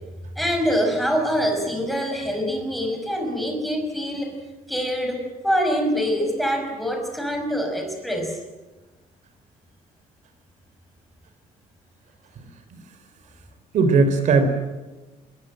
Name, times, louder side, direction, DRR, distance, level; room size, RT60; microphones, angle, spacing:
voice 1, 0.4-4.4 4.7-8.4, equal, ahead, 3 dB, 5.4 m, -25 dB
voice 2, 13.7-14.5, right 4 dB, 55° right, 9 dB, 3.7 m, -18 dB
26.5 x 22.0 x 7.7 m, 1.2 s
cardioid pair, 165°, 15 cm